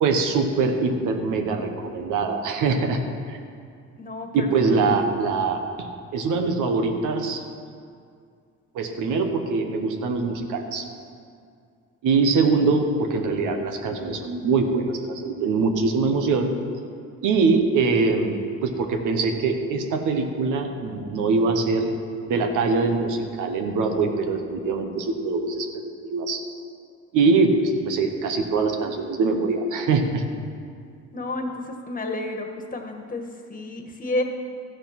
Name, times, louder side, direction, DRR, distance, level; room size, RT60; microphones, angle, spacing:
voice 1, 0.0-3.0 3.3-3.4 4.3-5.9 6.1-7.4 8.7-10.9 12.0-16.5 17.2-21.9 22.3-25.7 26.0-26.4 27.1-30.2, right 4 dB, 85° right, 5 dB, 1.2 m, -23 dB
voice 2, 4.0-4.9 31.1-34.2, left 2 dB, 25° left, 4 dB, 1.5 m, -31 dB
14.0 x 6.8 x 5.9 m, 2.3 s
cardioid pair, 90°, 30 cm